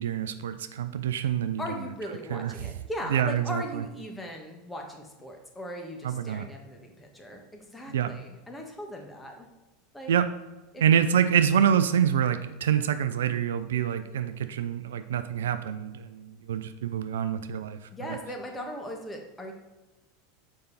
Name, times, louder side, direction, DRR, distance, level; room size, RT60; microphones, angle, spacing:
voice 1, 0.0-1.6 2.3-2.5 3.1-3.8 6.0-6.5 7.9-8.1 10.1-10.3 10.8-17.8 18.1-18.2, right 9 dB, 75° right, 11 dB, 0.4 m, -26 dB
voice 2, 1.6-9.5 9.9-10.1 10.7-11.0 17.9-19.5, equal, 10° left, 1 dB, 1.5 m, -39 dB
6.7 x 5.3 x 4.1 m, 1.1 s
hypercardioid pair, 85°, 0 cm